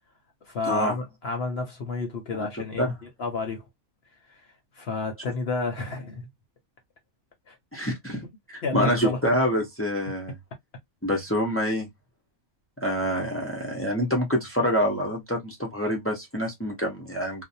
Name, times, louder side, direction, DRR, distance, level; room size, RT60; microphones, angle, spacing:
voice 1, 0.5-2.9 3.2-3.6 4.3-4.4 4.7-6.3 7.5-7.6 8.6-9.2, left 3 dB, 55° left, 0.8 m, -30 dB
voice 2, 7.7-10.3 11.0-11.9 12.8-17.4, equal, 20° left, 0.4 m, -26 dB
2.5 x 2.1 x 2.6 m
omnidirectional pair, 1.5 m